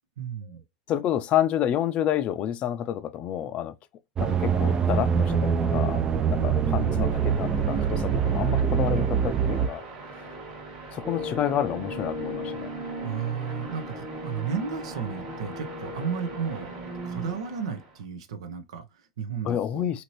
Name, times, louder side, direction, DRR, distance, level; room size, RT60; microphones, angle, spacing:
voice 1, 0.2-0.6 6.4-7.2 13.0-16.7 17.0-20.0, right 7 dB, 75° right, 0.7 m, -34 dB
voice 2, 0.9-3.7 4.2-9.8 10.1-10.4 10.9-12.7 19.4-20.0, left 11 dB, 40° left, 0.4 m, -29 dB
sound 1, 4.2-9.7, right 7 dB, 25° right, 0.4 m, -24 dB
sound 2, 6.5-18.0, right 3 dB, 50° right, 1.3 m, -43 dB
sound 3, 11.0-17.4, left 1 dB, 5° right, 0.9 m, -37 dB
2.9 x 2.7 x 3.0 m
hypercardioid pair, 100°, 3 cm